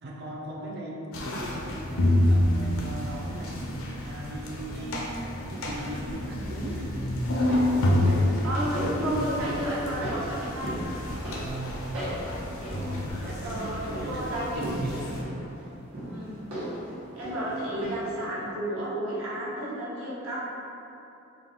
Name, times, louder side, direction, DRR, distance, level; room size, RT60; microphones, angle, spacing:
voice 1, 0.0-3.7 4.0-6.9 7.5-10.2 11.3-11.9 12.7-15.3, right 1 dB, 50° right, -3 dB, 0.6 m, -38 dB
sound 1, 1.1-15.2, left 1 dB, 75° left, 0.6 m, -29 dB
sound 2, 7.2-18.2 18.5-18.6, equal, 90° right, 1.3 m, -38 dB
voice 2, 8.4-10.8 13.4-14.6 16.1-16.4 17.1-20.4, right 1 dB, 70° right, -8 dB, 1.0 m, -31 dB
3.9 x 2.3 x 3.6 m, 2.9 s
head